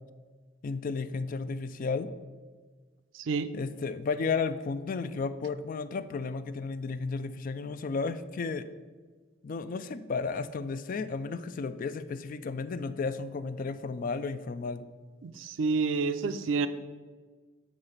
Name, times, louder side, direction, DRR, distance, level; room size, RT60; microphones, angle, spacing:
voice 1, 0.6-2.1 3.5-8.7 9.4-14.9, left 4 dB, 45° left, 13 dB, 0.3 m, -33 dB
voice 2, 3.1-3.5 15.2-16.7, right 4 dB, 70° right, 11 dB, 0.4 m, -29 dB
7.3 x 3.9 x 6.5 m, 1.4 s
head